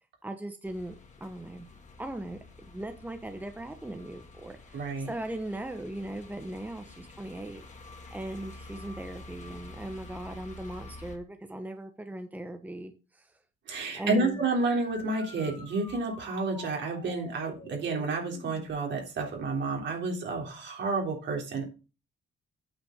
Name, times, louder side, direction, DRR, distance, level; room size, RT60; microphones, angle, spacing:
voice 1, 0.2-1.7 2.0-7.6 8.1-13.3 13.9-14.4, right 1 dB, 10° right, 8 dB, 1.0 m, -39 dB
sound 1, 0.6-11.2, left 2 dB, 35° left, 2.2 m, -49 dB
voice 2, 4.7-5.1 13.7-21.6, right 3 dB, 65° right, 2 dB, 3.4 m, -30 dB
sound 2, 13.7-18.7, left 3 dB, 20° left, 1.8 m, -48 dB
8.7 x 5.8 x 5.2 m, 0.32 s
cardioid pair, 90°, 20 cm